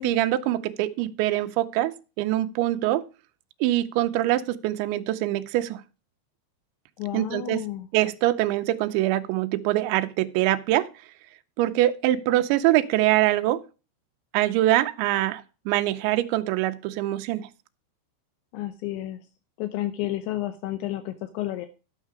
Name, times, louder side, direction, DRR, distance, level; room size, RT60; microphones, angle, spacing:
voice 1, 0.0-3.0 3.6-5.8 7.1-7.6 7.9-10.9 11.6-13.6 14.3-17.5, right 15 dB, 85° right, 9 dB, 3.0 m, -24 dB
voice 2, 7.0-7.9 18.5-19.2 19.6-21.7, left 14 dB, 80° left, 9 dB, 3.1 m, -31 dB
12.0 x 6.5 x 4.8 m, 0.32 s
omnidirectional pair, 5.2 m